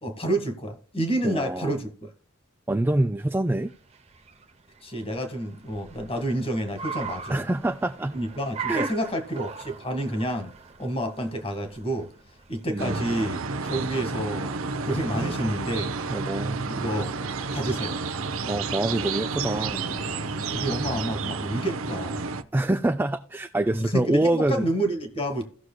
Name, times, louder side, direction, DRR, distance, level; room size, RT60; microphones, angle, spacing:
voice 1, 0.0-1.9 4.8-7.4 8.1-10.5 10.8-12.1 12.5-14.5 14.8-15.9 16.7-17.1 17.5-18.0 20.4-22.2 23.7-25.5, right 1 dB, 25° left, 1.6 m, -29 dB
voice 2, 1.2-1.8 2.7-3.7 7.3-8.2 8.7-8.9 12.7-13.1 15.1-15.4 16.1-16.8 18.5-19.9 22.5-24.7, right 1 dB, 10° right, 0.3 m, -26 dB
Car, 3.2-13.5, right 6 dB, 30° right, 0.8 m, -40 dB
sound 1, 12.8-22.4, right 4 dB, 85° right, 0.7 m, -31 dB
Thunder / Rain, 15.8-21.1, left 1 dB, 55° left, 2.6 m, -46 dB
17.5 x 6.4 x 2.2 m
head